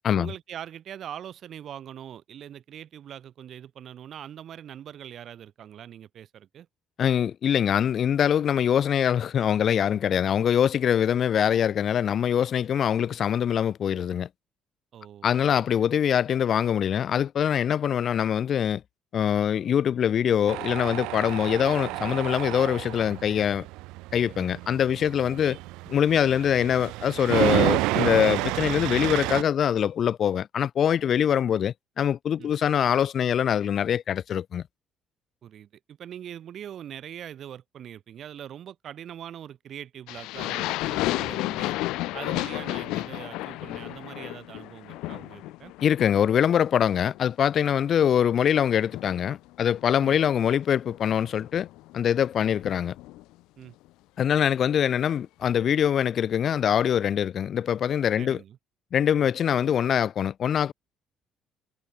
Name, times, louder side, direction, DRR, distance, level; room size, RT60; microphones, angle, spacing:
voice 1, 0.1-6.7 14.9-15.7 32.4-32.5 35.4-41.8 42.1-45.7 50.0-50.2 52.4-52.5 53.6-53.7 58.2-58.6 59.2-59.3, right 10 dB, 60° right, 2.4 m, -42 dB
voice 2, 7.0-14.3 15.2-18.8 19.1-23.7 24.1-25.6 25.9-34.6 45.8-51.7 51.9-53.0 54.2-58.4 58.9-60.7, left 9 dB, 55° left, 0.4 m, -23 dB
Tools, 20.5-29.4, right 21 dB, 90° right, 1.3 m, -30 dB
sound 1, 40.1-46.5 46.8-47.3 47.6-53.2, left 19 dB, 85° left, 1.0 m, -33 dB
cardioid pair, 85°, 0 cm